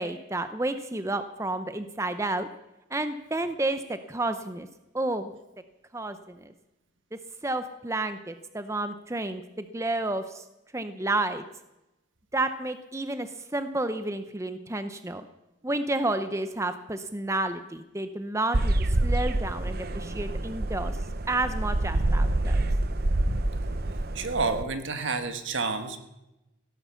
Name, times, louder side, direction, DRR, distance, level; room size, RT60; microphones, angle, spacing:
voice 1, 0.0-2.5 2.9-4.7 4.9-5.3 5.9-6.5 7.4-10.4 10.7-11.4 12.3-15.3 15.6-18.7 19.0-20.9 21.3-22.6, right 2 dB, 15° right, 9 dB, 0.7 m, -30 dB
sound 1, 18.5-24.6, right 1 dB, 50° right, 0.8 m, -27 dB
voice 2, 24.1-26.0, right 4 dB, 70° right, 8 dB, 1.5 m, -29 dB
16.5 x 12.0 x 7.0 m, 0.96 s
head